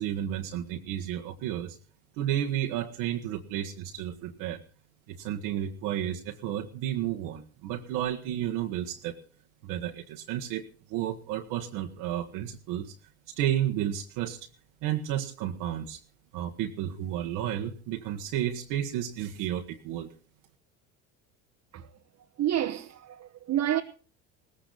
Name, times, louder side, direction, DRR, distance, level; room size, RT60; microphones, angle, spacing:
voice 1, 0.0-1.8 2.2-4.6 5.1-9.2 9.6-12.9 13.3-14.5 14.8-16.0 16.3-20.1, right 11 dB, 70° right, 1.6 m, -32 dB
voice 2, 22.4-23.8, right 11 dB, 45° right, 1.2 m, -29 dB
18.0 x 15.0 x 4.0 m
supercardioid pair, 85°, 37 cm